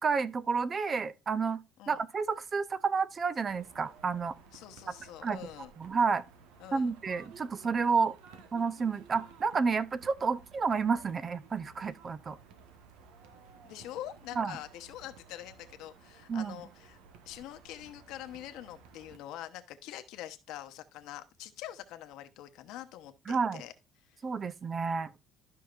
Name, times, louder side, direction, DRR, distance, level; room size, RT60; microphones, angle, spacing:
voice 1, 0.0-1.6 1.9-4.4 4.9-5.0 5.2-5.5 5.8-6.2 6.7-8.2 8.5-12.4 14.4-14.6 16.3-16.6 23.3-23.6 24.2-25.1, right 5 dB, 30° right, 0.5 m, -30 dB
sound 1, 3.5-19.2, right 5 dB, 90° right, 1.4 m, -56 dB
voice 2, 4.5-5.7 6.6-6.9 13.6-17.0 17.2-23.7 24.0-24.2, left 13 dB, 75° left, 1.0 m, -45 dB
12.5 x 5.7 x 2.5 m
cardioid pair, 130°, 0 cm